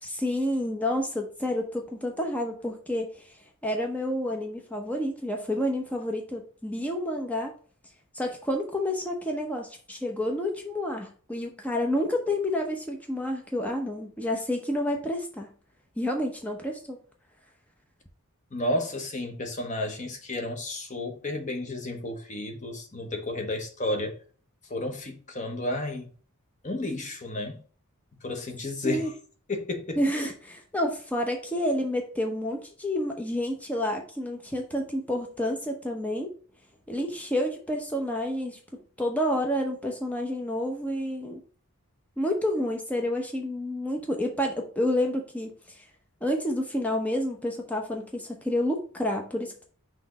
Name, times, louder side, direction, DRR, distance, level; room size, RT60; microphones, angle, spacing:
voice 1, 0.0-3.3 3.6-7.5 8.1-15.5 16.0-17.0 28.8-29.1 30.0-36.3 36.9-38.6 39.0-41.4 42.2-45.8 46.2-49.7, left 1 dB, 5° left, 0.9 m, -29 dB
voice 2, 18.5-24.2 24.7-26.1 26.6-27.6 28.2-29.1 29.5-30.0, left 1 dB, 35° left, 1.0 m, -32 dB
6.0 x 3.3 x 4.8 m
head